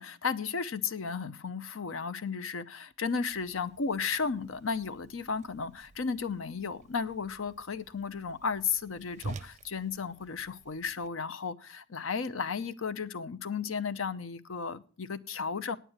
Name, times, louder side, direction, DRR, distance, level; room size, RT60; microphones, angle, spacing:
voice 1, 0.0-15.8, left 5 dB, 85° left, 0.7 m, -34 dB
Whoosh swoosh swish, 3.3-11.1, right 3 dB, 35° right, 0.5 m, -49 dB
9.1 x 9.1 x 7.8 m
head